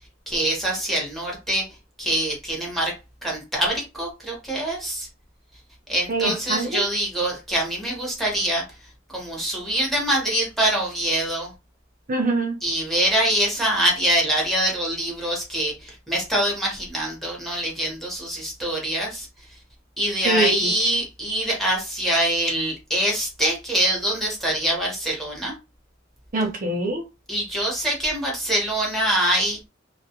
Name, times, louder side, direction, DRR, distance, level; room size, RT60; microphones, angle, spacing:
voice 1, 0.3-1.7 2.0-2.9 3.2-5.1 5.9-8.6 9.1-11.5 12.6-19.3 20.0-25.5 27.3-29.6, right 1 dB, ahead, 1.0 m, -24 dB
voice 2, 6.1-6.8 12.1-12.6 20.2-20.7 26.3-27.0, right 2 dB, 45° right, 0.5 m, -24 dB
2.3 x 2.1 x 2.8 m
head